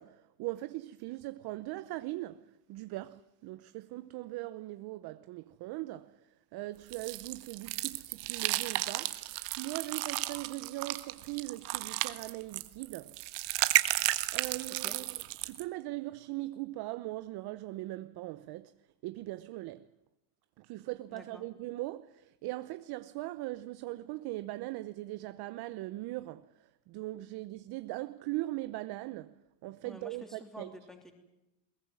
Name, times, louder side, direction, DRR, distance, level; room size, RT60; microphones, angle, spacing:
voice 1, 0.0-13.2 13.8-19.9 20.6-30.8, right 18 dB, 55° right, 0.9 m, -40 dB
sound 1, 6.9-15.6, right 19 dB, 70° right, 1.6 m, -33 dB
voice 2, 21.1-21.5 29.8-31.1, equal, ahead, 3.1 m, -49 dB
22.0 x 18.0 x 9.7 m
supercardioid pair, 115°, 47 cm